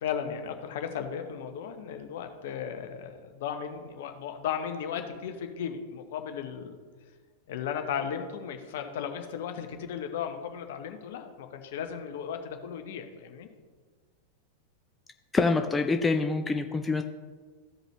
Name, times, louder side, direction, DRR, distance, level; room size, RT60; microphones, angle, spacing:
voice 1, 0.0-6.8 7.5-13.5, left 8 dB, 55° left, 6 dB, 1.0 m, -35 dB
voice 2, 15.3-17.0, left 3 dB, 15° left, 6 dB, 0.5 m, -26 dB
15.0 x 5.2 x 3.2 m, 1.5 s
figure-of-eight pair, 90°, 0 cm